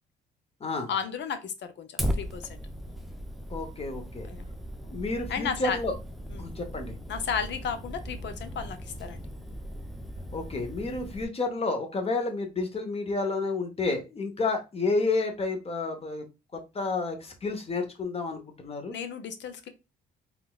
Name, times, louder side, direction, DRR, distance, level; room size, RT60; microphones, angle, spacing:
voice 1, 0.9-2.6 4.3-4.4 5.3-5.8 6.3-6.5 7.1-9.2 18.9-19.7, left 7 dB, 65° left, 9 dB, 0.6 m, -34 dB
Fire, 2.0-11.2, equal, ahead, 0.5 m, -37 dB
voice 2, 3.5-4.3 4.8-5.9 6.4-6.9 10.3-16.2 16.5-19.0, left 3 dB, 30° left, 5 dB, 0.8 m, -30 dB
3.8 x 2.3 x 2.3 m, 0.27 s
cardioid pair, 90°, 20 cm